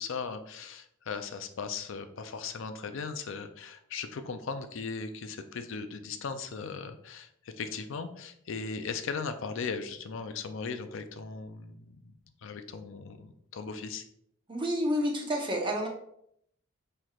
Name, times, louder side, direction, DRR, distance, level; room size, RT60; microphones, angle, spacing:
voice 1, 0.0-7.3 7.6-12.1 12.4-14.0, left 5 dB, 65° left, 9 dB, 0.5 m, -38 dB
voice 2, 14.5-15.9, equal, 25° right, 0 dB, 0.8 m, -29 dB
5.8 x 3.2 x 2.4 m, 0.71 s
head